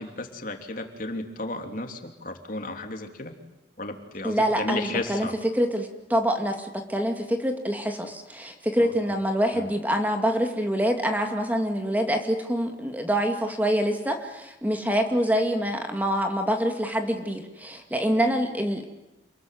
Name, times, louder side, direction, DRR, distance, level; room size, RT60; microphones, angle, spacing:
voice 1, 0.0-3.3 3.8-5.3 8.8-9.0 9.5-9.7, left 2 dB, 50° left, 5 dB, 3.2 m, -34 dB
voice 2, 4.2-5.3 5.5-18.8, equal, 10° right, 5 dB, 2.3 m, -25 dB
29.0 x 21.5 x 9.4 m, 1.0 s
head